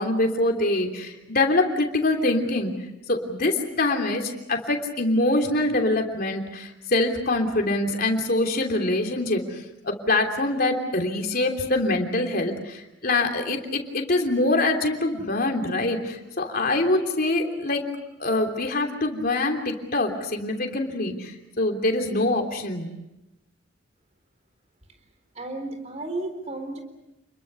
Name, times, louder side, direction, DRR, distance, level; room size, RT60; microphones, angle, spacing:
voice 1, 0.0-2.7 3.1-9.4 9.8-17.9 18.2-22.9, left 2 dB, 50° left, 2 dB, 3.2 m, -24 dB
voice 2, 25.3-26.8, right 2 dB, 35° right, 7 dB, 4.1 m, -33 dB
29.5 x 22.0 x 6.8 m, 0.94 s
head